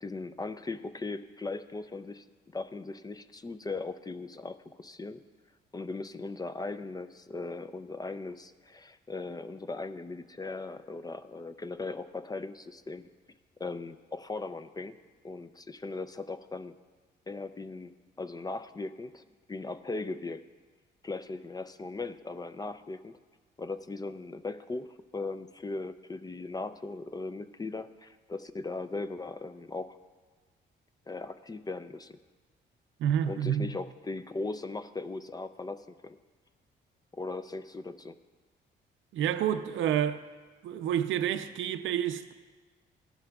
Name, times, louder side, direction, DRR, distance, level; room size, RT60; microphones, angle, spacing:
voice 1, 0.0-2.2 2.5-5.2 5.7-13.1 13.6-15.0 15.2-16.7 17.3-19.2 19.5-20.4 21.0-23.2 23.6-30.0 31.1-32.2 33.2-36.2 37.1-38.2, left 3 dB, 20° left, 0.4 m, -38 dB
voice 2, 33.0-33.7 39.1-40.2 40.6-42.3, right 10 dB, 75° right, 0.6 m, -29 dB
16.0 x 11.0 x 2.3 m
cardioid pair, 90°, 20 cm